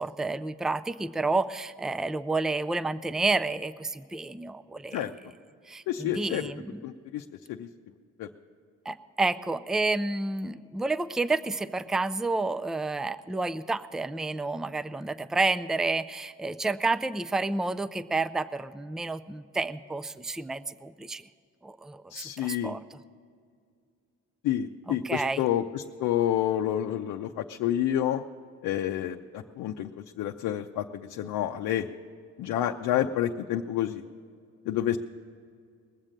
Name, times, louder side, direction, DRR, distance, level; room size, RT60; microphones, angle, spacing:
voice 1, 0.0-5.1 5.7-6.8 8.9-21.3 21.6-23.0 24.9-25.4, right 3 dB, ahead, 14 dB, 0.4 m, -30 dB
voice 2, 5.9-6.5 6.8-7.7 8.2-8.3 22.1-22.8 24.4-28.2 28.6-29.9 30.2-31.9 32.4-34.0 34.7-35.0, left 11 dB, 85° left, 3 dB, 0.6 m, -29 dB
20.5 x 7.4 x 6.5 m, 2.2 s
cardioid pair, 90°, 30 cm